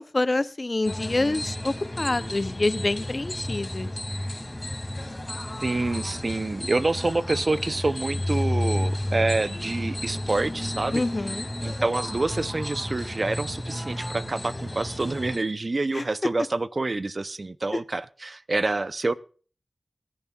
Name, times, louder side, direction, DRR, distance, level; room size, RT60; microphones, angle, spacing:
voice 1, 0.0-3.9 10.9-11.5 15.9-16.0 17.7-17.8, left 2 dB, 45° left, 15 dB, 0.6 m, -27 dB
sound 1, 0.8-15.4, left 1 dB, 20° left, 2.3 m, -32 dB
voice 2, 5.6-11.0 11.6-19.1, right 2 dB, 50° right, 15 dB, 0.5 m, -27 dB
23.0 x 11.0 x 2.3 m, 0.41 s
wide cardioid pair, 50°, 0 cm